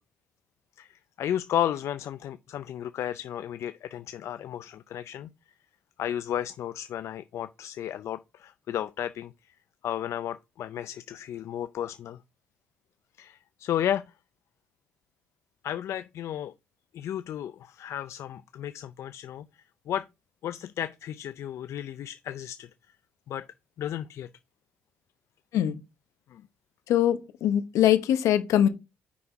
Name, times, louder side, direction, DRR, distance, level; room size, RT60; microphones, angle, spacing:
voice 1, 0.8-5.3 6.0-9.5 9.8-12.2 13.2-14.1 15.6-16.5 16.9-19.5 19.9-20.1 20.4-22.7 23.3-23.5 23.8-24.3 26.3-26.4, left 10 dB, 65° left, 0.4 m, -33 dB
voice 2, 26.9-28.7, left 11 dB, 80° left, 1.2 m, -22 dB
6.0 x 5.6 x 4.6 m
cardioid pair, 100°, 5 cm